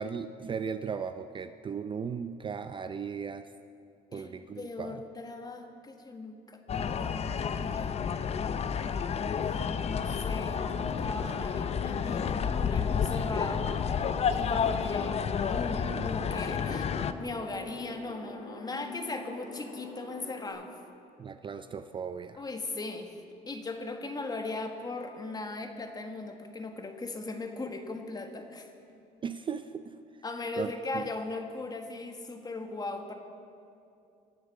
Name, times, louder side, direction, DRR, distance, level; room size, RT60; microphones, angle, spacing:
voice 1, 0.0-3.5 4.1-5.0 15.9-16.4 16.7-16.8 21.2-22.4 29.2-29.9 30.6-31.0, right 6 dB, 30° right, 10 dB, 0.5 m, -37 dB
voice 2, 4.1-8.0 8.2-9.1 9.5-9.6 9.8-13.7 14.3-20.7 22.4-23.1 23.5-28.7 30.2-33.1, left 2 dB, 25° left, 5 dB, 1.5 m, -38 dB
sound 1, 6.7-17.1, left 6 dB, 40° left, 0.7 m, -30 dB
sound 2, 10.2-20.5, left 4 dB, 85° left, 4.8 m, -44 dB
23.0 x 7.8 x 6.4 m, 2.6 s
cardioid pair, 110°, 17 cm